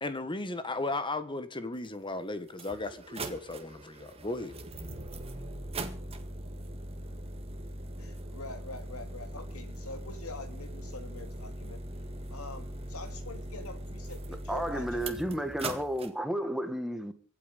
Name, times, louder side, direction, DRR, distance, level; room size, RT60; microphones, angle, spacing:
voice 1, 0.0-4.6, left 2 dB, 20° left, 1.5 m, -35 dB
sound 1, 1.8-1.9 2.5-16.1, right 1 dB, 25° right, 1.9 m, -41 dB
voice 2, 8.0-11.8 12.3-15.0, left 2 dB, 70° left, 2.8 m, -45 dB
voice 3, 14.5-17.1, equal, ahead, 1.6 m, -32 dB
24.0 x 9.0 x 5.3 m
head